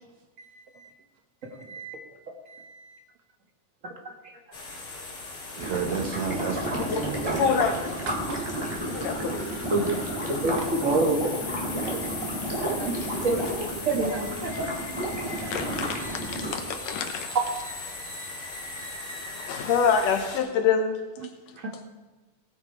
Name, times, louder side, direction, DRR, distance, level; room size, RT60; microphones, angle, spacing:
voice 1, 0.4-0.9 1.5-2.0 2.5-3.0 5.5-7.4 8.1-8.6 10.6-10.7 21.2-21.3 21.6-21.7, right 6 dB, 75° right, 5 dB, 1.3 m, -34 dB
sound 1, 4.5-20.4, left 3 dB, 35° left, 2.7 m, -38 dB
sound 2, 5.6-16.5, right 1 dB, 10° right, 2.6 m, -32 dB
voice 2, 7.4-7.9 8.8-9.5 15.5-17.4 19.4-21.0, left 6 dB, 90° left, 5 dB, 2.7 m, -26 dB
voice 3, 10.2-11.3 11.9-12.0 12.8-12.9 13.2-14.7, right 2 dB, 35° right, 1 dB, 1.2 m, -26 dB
18.0 x 8.6 x 4.8 m, 1.2 s
omnidirectional pair, 3.7 m